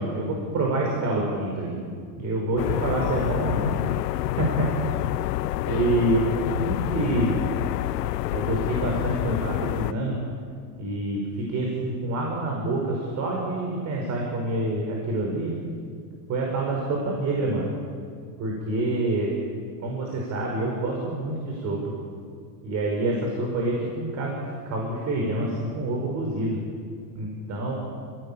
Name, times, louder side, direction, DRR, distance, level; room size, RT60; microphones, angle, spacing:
voice 1, 0.0-1.8 2.2-3.8 4.4-4.9 5.7-6.2 6.5-7.4 8.3-10.2 10.8-15.5 16.3-17.7 18.4-19.3 19.8-21.9 22.6-26.6 27.2-27.7, right 2 dB, 35° right, -1 dB, 5.6 m, -27 dB
sound 1, 2.6-9.9, left 16 dB, 85° left, 0.7 m, -28 dB
29.5 x 17.5 x 8.9 m, 2.1 s
supercardioid pair, 145°, 48 cm